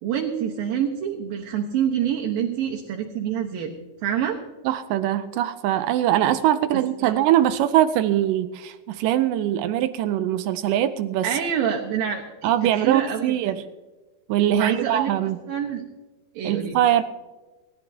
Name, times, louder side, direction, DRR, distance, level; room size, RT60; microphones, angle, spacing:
voice 1, 0.0-3.7 4.0-4.4 6.7-7.1 11.2-13.5 14.5-15.1 15.5-15.8 16.3-16.8, right 8 dB, 70° right, -1 dB, 2.9 m, -27 dB
voice 2, 4.7-11.3 12.4-13.6 14.3-15.4 16.4-17.0, right 12 dB, 90° right, 10 dB, 1.8 m, -22 dB
29.5 x 12.0 x 2.8 m, 1.2 s
omnidirectional pair, 4.5 m